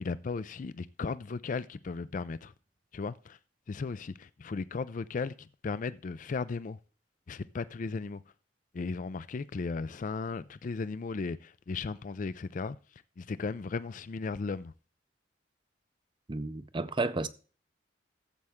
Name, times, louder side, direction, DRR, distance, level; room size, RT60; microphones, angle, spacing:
voice 1, 0.0-2.5 2.9-3.4 3.7-6.8 7.3-8.2 8.7-12.8 13.2-14.7, left 4 dB, 45° left, 0.4 m, -36 dB
voice 2, 16.3-17.3, right 3 dB, 25° right, 0.6 m, -32 dB
14.0 x 7.7 x 3.5 m
head